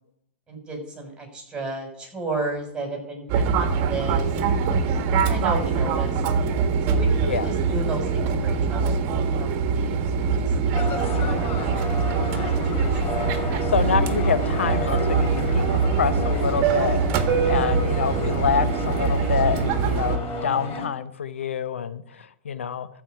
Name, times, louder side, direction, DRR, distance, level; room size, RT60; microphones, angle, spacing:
voice 1, 0.5-4.7 5.2-6.2 6.8-9.0 9.4-9.5 9.7-10.7 11.1-12.1 12.8-13.0 17.3-17.9, right 2 dB, 15° right, 2 dB, 6.3 m, -34 dB
Fixed-wing aircraft airplane, 3.3-20.2, right 5 dB, 45° right, 1.6 m, -23 dB
sound 1, 10.7-20.9, left 3 dB, 40° left, 3.3 m, -32 dB
voice 2, 13.7-17.0 17.4-22.9, left 7 dB, 85° left, 13 dB, 0.8 m, -26 dB
14.0 x 5.4 x 8.3 m, 0.73 s
hypercardioid pair, 110°, 7 cm